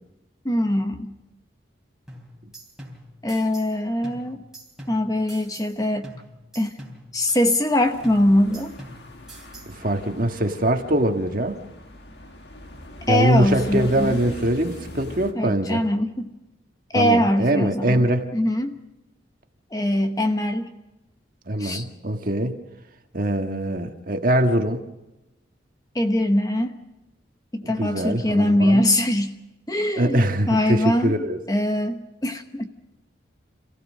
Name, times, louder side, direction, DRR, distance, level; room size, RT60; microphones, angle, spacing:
voice 1, 0.4-1.1 3.2-4.4 4.9-6.1 6.5-6.8 7.1-8.7 13.1-14.2 15.3-16.3 16.9-18.0 18.3-18.8 19.7-20.7 21.6-21.9 25.9-26.7 27.5-29.3 29.7-31.2 31.5-32.7, left 1 dB, 20° left, 7 dB, 1.0 m, -22 dB
sound 1, 2.1-3.8 4.0-5.8 6.0-7.8 8.0-9.8, right 1 dB, 5° right, 3.7 m, -44 dB
sound 2, 7.8-15.3, left 1 dB, 60° left, 1.8 m, -40 dB
voice 2, 9.7-11.6 13.1-15.8 16.9-18.3 21.5-22.6 23.1-24.8 27.6-28.8 29.9-31.4, right 1 dB, 45° right, 4 dB, 1.6 m, -23 dB
27.0 x 16.0 x 6.4 m, 0.99 s
head